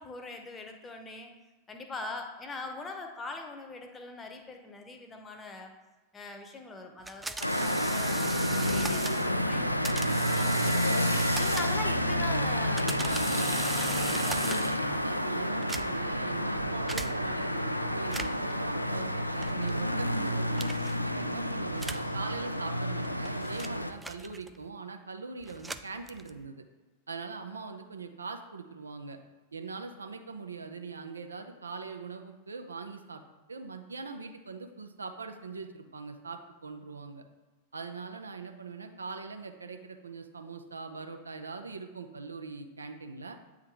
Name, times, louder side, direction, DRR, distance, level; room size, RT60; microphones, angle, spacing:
voice 1, 0.0-1.3 1.7-5.7 6.1-11.0 11.4-14.2, left 3 dB, 20° left, 5 dB, 0.9 m, -42 dB
sound 1, 7.1-9.3 9.8-12.0 12.5-14.9 15.5-16.2 16.9-17.1 18.0-18.5 19.4-19.7 20.6-21.0 21.8-22.1 22.9-24.7 25.4-26.5, right 3 dB, 10° right, 0.3 m, -39 dB
sound 2, 7.4-23.9, equal, 90° left, 0.4 m, -29 dB
voice 2, 13.9-14.5 14.9-26.6 27.1-29.2 29.5-33.2 33.5-37.2 37.7-43.4, right 4 dB, 75° right, 5 dB, 0.6 m, -42 dB
8.6 x 3.7 x 4.6 m, 1.2 s
figure-of-eight pair, 90°, 0 cm